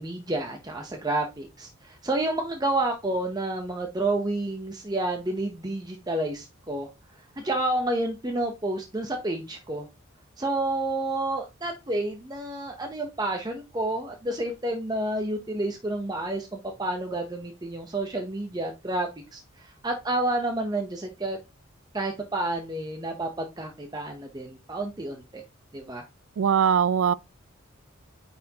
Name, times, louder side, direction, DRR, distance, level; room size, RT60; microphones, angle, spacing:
voice 1, 0.0-6.9 7.4-9.9 10.4-21.4 21.9-25.4 25.7-26.0, right 2 dB, 20° right, 0.7 m, -30 dB
voice 2, 26.4-27.1, right 7 dB, 70° right, 0.3 m, -21 dB
9.4 x 4.3 x 2.8 m
head